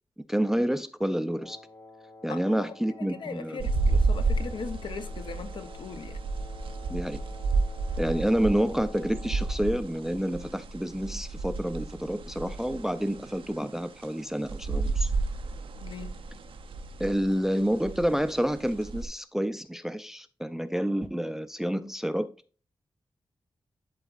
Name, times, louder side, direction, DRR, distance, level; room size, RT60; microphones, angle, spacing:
voice 1, 0.3-1.6 2.2-3.6 6.9-7.2 8.0-15.1 17.0-22.3, equal, 5° right, 0.4 m, -29 dB
Wind instrument woodwind instrument, 1.3-9.6, left 2 dB, 35° left, 0.8 m, -49 dB
voice 2, 2.3-6.2 15.8-16.2, left 5 dB, 65° left, 0.7 m, -39 dB
sound 1, 3.6-19.1, right 3 dB, 90° right, 0.7 m, -31 dB
11.5 x 4.0 x 2.4 m
wide cardioid pair, 145°, 9 cm